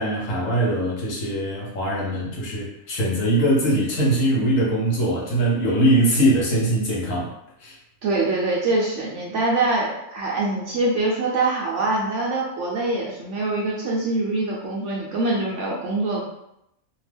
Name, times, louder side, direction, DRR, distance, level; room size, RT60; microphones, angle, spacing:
voice 1, 0.0-7.3 7.6-7.7, right 1 dB, 65° left, -4 dB, 1.1 m, -21 dB
voice 2, 8.0-16.2, right 2 dB, 65° right, -4 dB, 0.8 m, -24 dB
2.8 x 2.2 x 3.3 m, 0.81 s
omnidirectional pair, 1.6 m